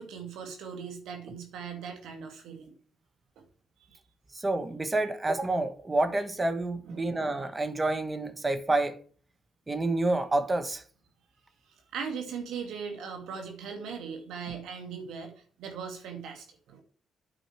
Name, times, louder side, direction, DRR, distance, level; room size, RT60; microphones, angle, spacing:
voice 1, 0.0-2.7 3.4-3.5 3.9-4.0 6.8-7.3 11.7-15.3 15.6-16.8, right 6 dB, 80° right, 2.3 m, -39 dB
voice 2, 4.3-9.0 9.7-10.8, right 2 dB, 25° right, 1.4 m, -28 dB
8.9 x 5.1 x 4.6 m
supercardioid pair, 65°, 0 cm